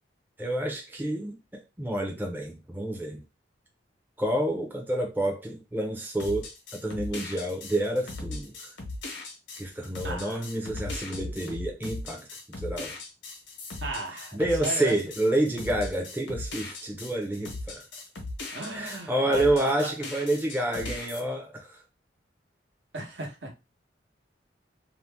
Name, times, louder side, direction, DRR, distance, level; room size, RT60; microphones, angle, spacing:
voice 1, 0.4-3.2 4.2-6.5 6.8-8.7 9.6-12.3 12.6-12.9 14.3-17.8 18.7-21.8, right 1 dB, 10° right, 0.5 m, -29 dB
sound 1, 6.2-19.0 19.3-21.2, left 2 dB, 80° left, 0.9 m, -38 dB
voice 2, 10.0-10.4 13.8-14.9 18.5-19.9 22.9-23.6, right 2 dB, 80° right, 1.0 m, -35 dB
2.7 x 2.1 x 3.3 m
head